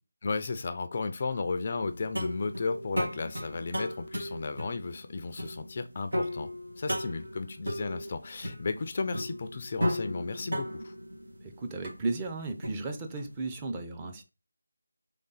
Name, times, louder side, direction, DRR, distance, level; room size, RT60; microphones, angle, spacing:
voice 1, 0.2-10.9, left 4 dB, 40° left, 0.4 m, -34 dB
sound 1, 1.8-13.3, equal, 80° right, 2.0 m, -36 dB
voice 2, 11.4-14.3, right 3 dB, 15° right, 0.6 m, -35 dB
3.8 x 3.4 x 4.0 m
figure-of-eight pair, 165°, 0 cm